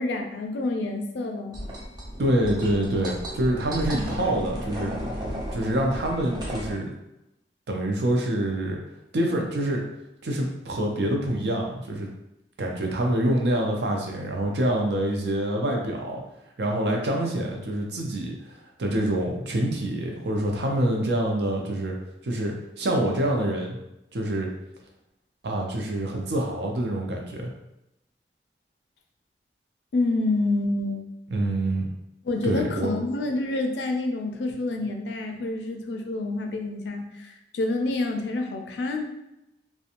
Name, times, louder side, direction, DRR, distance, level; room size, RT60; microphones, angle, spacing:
voice 1, 0.0-1.6 29.9-31.0 32.2-39.0, left 2 dB, 80° left, 4 dB, 0.4 m, -28 dB
sound 1, 1.5-6.7, equal, 25° right, 0.4 m, -34 dB
voice 2, 2.2-4.9 5.5-6.9 7.7-8.8 9.1-9.8 10.2-12.1 12.6-16.2 16.6-22.0 22.2-23.8 24.1-24.5 25.4-27.5 31.3-31.8 32.4-32.9, right 1 dB, 75° right, 0 dB, 0.5 m, -26 dB
2.5 x 2.2 x 2.8 m, 0.89 s
head